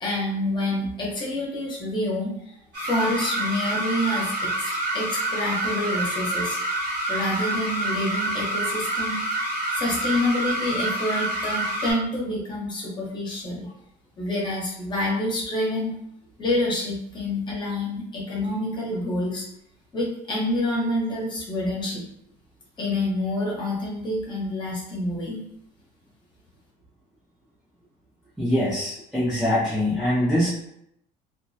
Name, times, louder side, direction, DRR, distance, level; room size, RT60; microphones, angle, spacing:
voice 1, 0.0-2.6 2.8-6.6 7.1-9.2 9.8-13.7 14.2-15.9 16.4-19.4 19.9-22.0 22.8-25.4, left 1 dB, 25° left, -3 dB, 0.7 m, -27 dB
sound 1, 2.7-11.9, right 1 dB, 60° right, 1.2 m, -27 dB
voice 2, 28.4-30.5, left 1 dB, ahead, -10 dB, 0.3 m, -23 dB
2.3 x 2.1 x 2.6 m, 0.75 s
cardioid pair, 160°, 19 cm